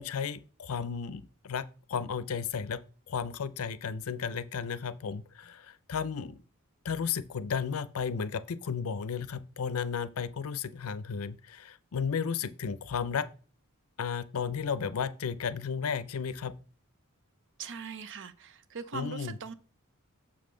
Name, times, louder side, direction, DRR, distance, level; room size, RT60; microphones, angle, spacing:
voice 1, 0.0-2.8 3.1-6.4 6.8-13.3 14.0-16.5 18.9-19.4, left 6 dB, 70° left, 0.5 m, -34 dB
voice 2, 17.6-19.5, right 5 dB, 60° right, 0.6 m, -40 dB
6.6 x 5.6 x 3.8 m
head